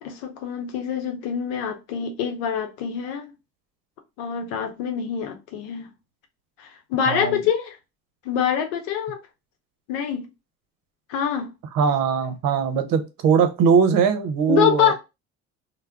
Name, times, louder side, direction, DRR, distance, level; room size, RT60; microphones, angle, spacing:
voice 1, 0.0-3.3 4.2-5.9 6.6-7.8 8.2-9.2 9.9-10.3 11.1-11.5 14.5-14.9, left 8 dB, 85° left, 0.7 m, -25 dB
voice 2, 7.1-7.4 11.7-14.9, right 6 dB, 70° right, 0.7 m, -20 dB
2.2 x 2.1 x 3.4 m
supercardioid pair, 70°, 35 cm